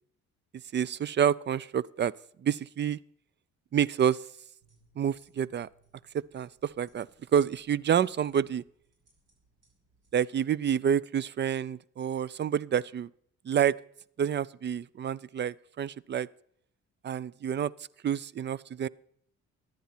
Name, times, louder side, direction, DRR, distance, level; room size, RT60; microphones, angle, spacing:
voice 1, 0.7-2.1 2.4-3.0 3.7-4.2 5.0-5.7 6.1-8.6 10.1-13.1 13.4-13.8 14.2-16.3 17.0-17.7 18.0-18.9, right 8 dB, 35° right, 23 dB, 0.4 m, -28 dB
sound 1, 4.6-10.1, right 3 dB, 55° right, 6.8 m, -68 dB
14.0 x 11.0 x 4.3 m, 0.66 s
cardioid pair, 90°, 30 cm